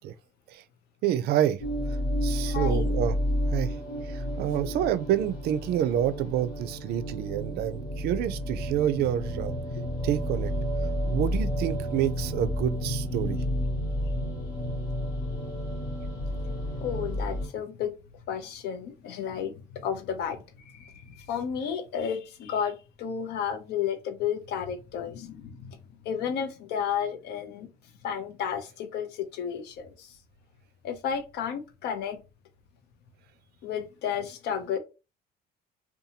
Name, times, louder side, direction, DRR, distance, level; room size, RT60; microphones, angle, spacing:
voice 1, 1.0-1.6 2.2-3.2 3.5-3.8 4.1-9.5 10.0-10.5 11.1-13.4, right 11 dB, 70° right, 0.4 m, -28 dB
sound 1, 1.6-17.5, equal, 65° left, 1.1 m, -31 dB
voice 2, 2.5-2.9 16.8-17.9 18.3-25.8 26.0-27.7 28.0-30.1 30.8-32.2 33.6-34.8, left 8 dB, 80° left, 0.6 m, -32 dB
2.6 x 2.3 x 2.8 m
cardioid pair, 110°, 17 cm